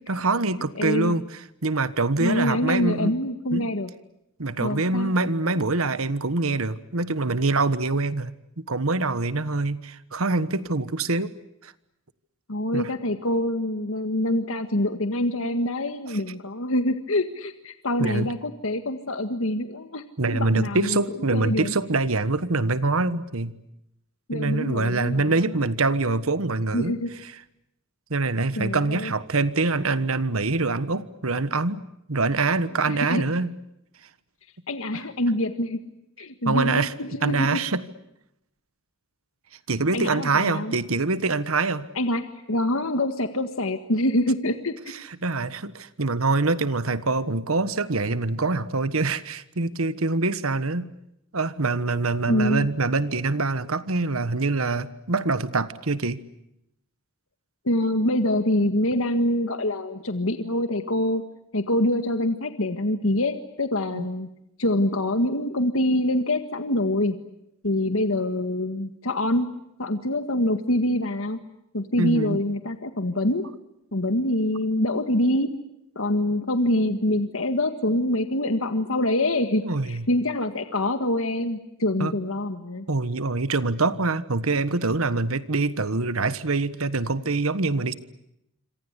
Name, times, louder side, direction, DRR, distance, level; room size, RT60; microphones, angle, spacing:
voice 1, 0.1-1.3 1.6-3.1 3.5-3.6 4.4-11.3 11.6-11.7 12.7-12.9 16.1-16.2 18.0-18.3 20.2-23.5 24.3-27.0 28.1-31.8 32.1-33.5 36.4-36.9 37.2-37.8 39.7-41.9 45.2-50.9 51.3-56.2 63.9-64.0 72.0-72.4 79.6-80.0 82.0-82.1 82.9-87.9, right 3 dB, 80° right, 15 dB, 1.4 m, -24 dB
voice 2, 0.8-1.1 2.2-3.9 4.6-5.1 12.5-20.0 20.3-21.7 24.3-25.6 26.7-27.1 28.6-29.1 32.9-33.3 34.7-35.8 36.2-37.6 39.9-40.7 42.0-44.7 52.3-52.7 57.7-61.2 61.5-64.3 64.6-67.2 67.6-69.5 69.8-71.4 71.7-73.4 73.9-75.5 76.0-82.9, left 1 dB, 70° left, 9 dB, 1.7 m, -25 dB
26.5 x 26.5 x 8.2 m, 0.83 s
head